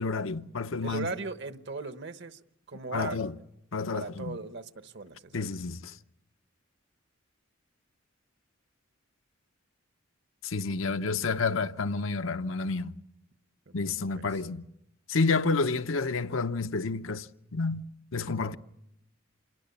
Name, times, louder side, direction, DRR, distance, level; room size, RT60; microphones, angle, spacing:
voice 1, 0.0-1.1 2.9-3.3 3.7-4.4 5.3-6.0 10.4-12.9 13.7-14.6 15.1-17.3 17.5-18.6, left 4 dB, 75° left, 0.8 m, -30 dB
voice 2, 0.8-2.4 2.7-3.2 3.9-5.5 13.7-13.8, right 3 dB, 60° right, 1.1 m, -37 dB
27.0 x 21.5 x 7.1 m
head